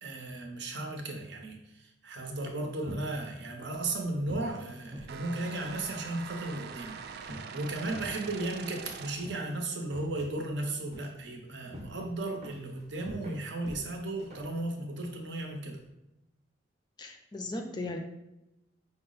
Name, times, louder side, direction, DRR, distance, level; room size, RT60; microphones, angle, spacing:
voice 1, 0.0-15.8, right 2 dB, 70° right, 2 dB, 0.7 m, -35 dB
sound 1, 2.4-15.9, equal, 35° right, 0.7 m, -48 dB
sound 2, 5.1-9.5, right 6 dB, 55° right, 0.3 m, -44 dB
voice 2, 17.0-18.0, left 2 dB, 25° left, 4 dB, 0.4 m, -37 dB
5.4 x 2.0 x 3.9 m, 0.90 s
head